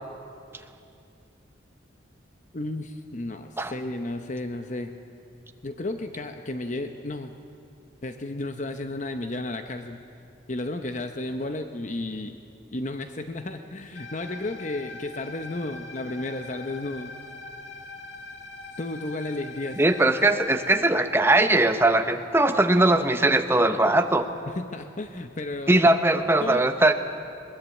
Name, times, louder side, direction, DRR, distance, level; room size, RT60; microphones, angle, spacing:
voice 1, 2.5-4.9 5.6-7.3 8.0-10.0 10.5-12.4 12.7-17.2 18.8-19.8 24.5-25.8 26.4-26.7, left 2 dB, 40° left, 7 dB, 0.8 m, -33 dB
sound 1, 13.9-20.9, left 3 dB, 65° left, 2.1 m, -42 dB
voice 2, 19.8-24.3 25.7-26.9, right 2 dB, 10° right, 7 dB, 0.9 m, -20 dB
21.0 x 20.5 x 8.3 m, 2.5 s
head